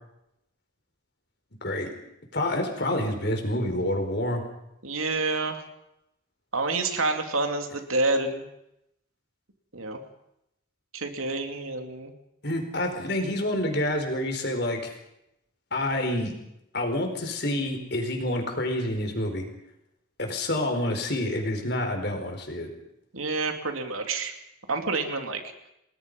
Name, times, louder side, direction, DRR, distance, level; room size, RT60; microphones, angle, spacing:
voice 1, 2.3-4.4 12.4-14.9 15.7-16.3 16.7-19.4 20.2-22.7, left 1 dB, 50° left, 4 dB, 4.6 m, -28 dB
voice 2, 4.8-5.6 6.5-8.4 9.7-10.0 10.9-12.1 23.1-24.3 24.7-25.4, right 3 dB, 85° right, 5 dB, 2.9 m, -28 dB
30.0 x 19.5 x 5.5 m, 0.82 s
head